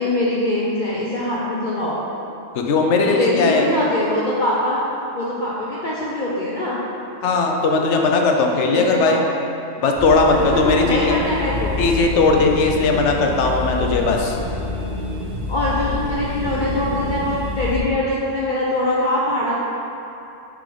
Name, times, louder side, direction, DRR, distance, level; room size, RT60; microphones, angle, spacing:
voice 1, 0.0-2.0 3.0-4.8 5.1-6.8 8.7-9.2 10.3-11.8 15.5-19.6, left 1 dB, 45° left, -6 dB, 0.8 m, -22 dB
voice 2, 2.5-3.7 7.2-9.2 9.8-11.2 11.8-14.4, left 3 dB, 70° left, 2 dB, 1.0 m, -18 dB
sound 1, 9.9-17.8, left 3 dB, 45° right, 1.8 m, -27 dB
6.6 x 4.9 x 3.8 m, 2.7 s
omnidirectional pair, 1.3 m